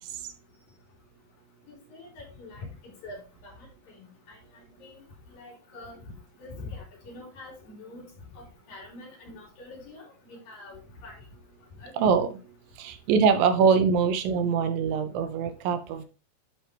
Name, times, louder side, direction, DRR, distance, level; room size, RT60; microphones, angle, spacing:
voice 1, 1.7-2.7 3.0-3.2 4.8-5.0 5.3-6.0 6.4-8.1 8.4-11.1 11.8-11.9, left 2 dB, 80° left, -3 dB, 5.3 m, -44 dB
voice 2, 12.0-12.3 12.8-16.1, right 6 dB, 85° right, 8 dB, 2.6 m, -23 dB
11.0 x 4.5 x 3.3 m, 0.33 s
omnidirectional pair, 4.0 m